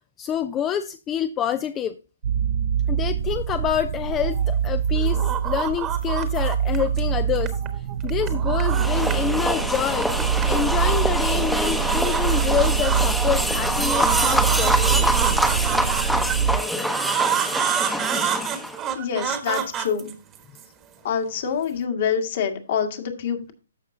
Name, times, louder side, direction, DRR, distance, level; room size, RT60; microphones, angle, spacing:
voice 1, 0.2-1.9 2.9-7.5 8.0-10.1 10.4-15.3, left 9 dB, 20° left, 11 dB, 0.4 m, -27 dB
sound 1, 2.2-16.6, right 8 dB, 55° right, 0.6 m, -24 dB
sound 2, 4.1-4.7 5.0-7.0 7.3-9.3 9.6-10.9 11.3-13.0 13.7-16.3 16.9-20.6, right 10 dB, 20° right, 1.2 m, -28 dB
sound 3, 8.7-18.8, equal, ahead, 0.9 m, -25 dB
voice 2, 19.0-20.1 21.0-23.5, left 7 dB, 50° left, 4 dB, 1.8 m, -26 dB
13.5 x 5.4 x 2.7 m, 0.33 s
hypercardioid pair, 145°, 0 cm